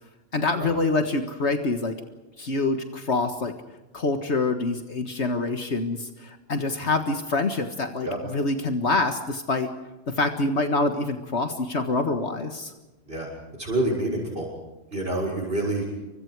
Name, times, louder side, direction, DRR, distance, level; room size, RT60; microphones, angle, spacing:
voice 1, 0.3-2.0 2.4-3.5 3.9-9.7 10.1-12.7, left 3 dB, 70° left, 6 dB, 1.9 m, -26 dB
voice 2, 13.6-14.5 14.9-15.8, right 1 dB, 55° right, 0 dB, 6.5 m, -27 dB
29.0 x 24.5 x 4.8 m, 1.1 s
omnidirectional pair, 1.2 m